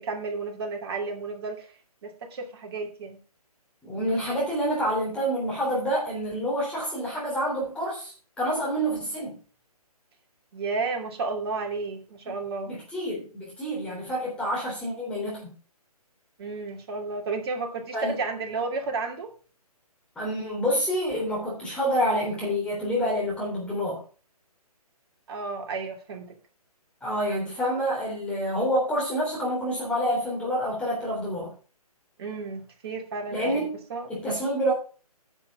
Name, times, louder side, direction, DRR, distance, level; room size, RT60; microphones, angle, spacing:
voice 1, 0.0-1.7 2.0-3.2 10.5-12.7 16.4-19.3 25.3-26.3 32.2-34.1, right 4 dB, 40° right, 3 dB, 2.8 m, -32 dB
voice 2, 3.8-9.4 12.7-15.5 17.9-18.2 20.1-24.0 27.0-31.5 33.3-33.8 34.1-34.7, equal, 5° left, -5 dB, 3.4 m, -28 dB
10.5 x 7.5 x 4.9 m, 0.37 s
figure-of-eight pair, 145°, 20 cm